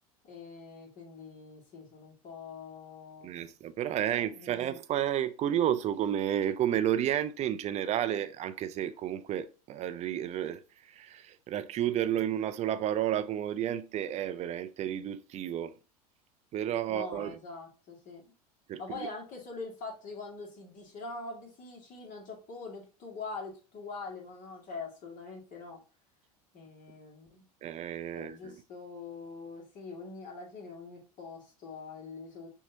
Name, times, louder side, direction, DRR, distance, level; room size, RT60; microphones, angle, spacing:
voice 1, 0.2-3.3 4.1-4.7 16.9-18.3 18.8-25.8 26.5-27.4 28.1-32.5, left 4 dB, 40° left, 2.0 m, -44 dB
voice 2, 3.2-15.7 16.5-17.4 18.7-19.1 27.6-28.6, right 10 dB, 35° right, 0.4 m, -31 dB
5.9 x 2.8 x 2.7 m
hypercardioid pair, 85°, 20 cm